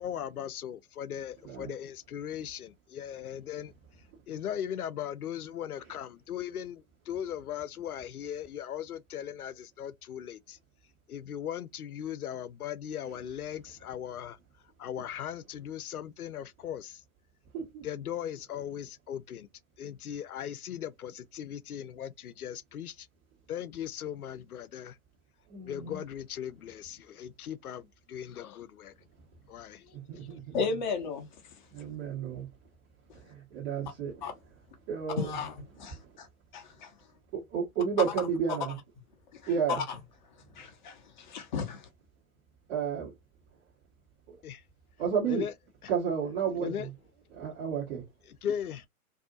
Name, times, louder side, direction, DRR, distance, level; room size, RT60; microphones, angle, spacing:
voice 1, 0.0-3.7 4.3-10.6 11.1-14.4 14.8-17.0 17.8-19.5 19.8-23.1 23.5-25.0 25.6-28.9 29.5-30.4 44.4-44.6 45.3-45.5 45.8-45.9 46.6-46.9 48.3-48.9, left 9 dB, 80° left, 0.6 m, -38 dB
voice 2, 25.5-26.0 29.9-30.6 31.7-32.5 33.3-34.2 34.9-35.4 35.9-36.0 37.3-38.8 39.5-39.8 42.7-43.1 44.3-44.4 45.0-45.4 45.9-46.9 47.3-48.0, right 7 dB, 35° right, 1.3 m, -32 dB
voice 3, 30.5-31.2 34.2-34.3 35.2-36.3 36.5-36.9 39.7-40.0 40.6-41.9, left 5 dB, 30° left, 0.7 m, -34 dB
2.7 x 2.6 x 2.4 m
figure-of-eight pair, 130°, 44 cm